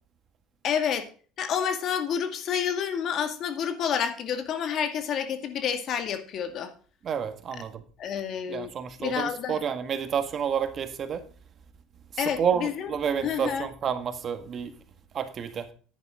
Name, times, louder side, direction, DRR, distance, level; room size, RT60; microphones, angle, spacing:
voice 1, 0.6-1.1 1.4-6.7 8.0-8.7 9.0-9.6 12.2-12.9 13.2-13.7, left 8 dB, 50° left, 8 dB, 2.1 m, -29 dB
voice 2, 7.0-7.8 8.5-11.2 12.4-14.7 15.1-15.7, right 7 dB, 45° right, 9 dB, 1.9 m, -29 dB
10.5 x 9.8 x 3.7 m, 0.40 s
supercardioid pair, 95°, 0 cm